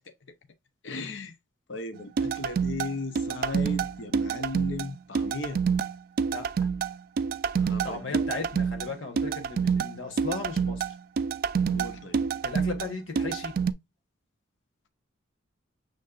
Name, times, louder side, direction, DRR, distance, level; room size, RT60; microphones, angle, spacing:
voice 1, 0.8-1.4 1.7-5.6 7.5-8.2 11.7-12.2, left 3 dB, 65° left, 0.6 m, -37 dB
sound 1, 2.2-13.7, right 6 dB, 50° right, 0.3 m, -28 dB
voice 2, 6.2-6.7 7.8-10.9 12.4-13.6, left 3 dB, 85° left, 1.5 m, -36 dB
6.4 x 3.2 x 2.4 m
head